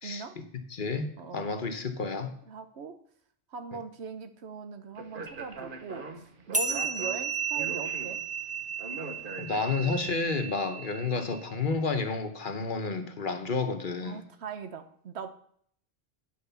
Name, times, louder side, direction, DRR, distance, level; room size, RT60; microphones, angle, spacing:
voice 1, 0.0-0.4 1.2-1.4 2.5-3.0 3.5-8.2 9.7-10.2 11.1-11.3 14.0-15.3, right 6 dB, 75° right, 9 dB, 1.2 m, -41 dB
voice 2, 0.7-1.1 1.3-2.3 9.4-14.3, left 4 dB, 50° left, 6 dB, 1.1 m, -30 dB
Speech, 5.0-10.0, right 3 dB, 55° right, 1.2 m, -42 dB
sound 1, 6.5-11.4, right 5 dB, 10° right, 0.7 m, -34 dB
10.5 x 4.8 x 6.9 m, 0.63 s
omnidirectional pair, 1.1 m